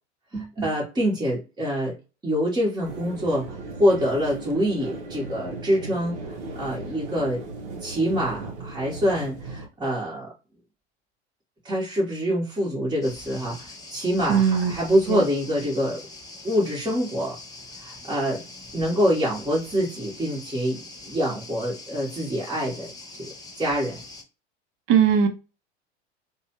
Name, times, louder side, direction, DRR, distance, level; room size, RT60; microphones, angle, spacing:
voice 1, 0.3-1.9 2.2-6.2 6.5-7.4 7.8-10.3 11.6-16.0 16.4-17.4 17.8-18.4 18.7-22.9 23.6-24.0, equal, 10° right, 1.0 m, -25 dB
sound 1, 2.8-9.7, right 3 dB, 70° right, 0.8 m, -37 dB
sound 2, 13.0-24.2, left 2 dB, 10° left, 0.7 m, -43 dB
voice 2, 14.3-15.2 24.9-25.3, right 8 dB, 40° right, 0.7 m, -20 dB
2.6 x 2.2 x 2.9 m
figure-of-eight pair, 85°, 35 cm